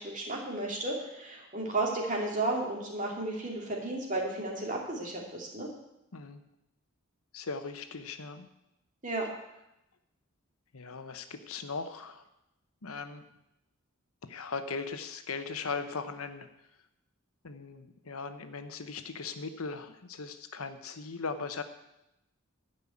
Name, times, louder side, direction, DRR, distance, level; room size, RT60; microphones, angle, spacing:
voice 1, 0.0-5.7 9.0-9.3, right 2 dB, 35° right, -1 dB, 2.6 m, -33 dB
voice 2, 7.3-8.5 10.7-12.2 12.8-13.2 14.3-16.5 17.4-21.6, left 4 dB, 80° left, 9 dB, 1.0 m, -38 dB
12.5 x 5.5 x 8.6 m, 0.88 s
head